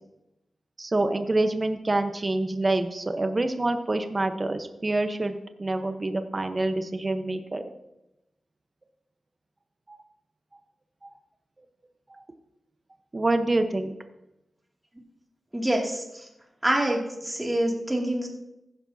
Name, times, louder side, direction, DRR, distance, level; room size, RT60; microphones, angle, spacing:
voice 1, 0.8-7.6 9.9-10.0 13.1-13.9, right 2 dB, 30° right, 7 dB, 1.0 m, -26 dB
voice 2, 15.5-16.0 16.6-18.3, right 1 dB, 10° right, -1 dB, 2.5 m, -26 dB
15.0 x 11.0 x 2.8 m, 0.89 s
wide cardioid pair, 105°, 0 cm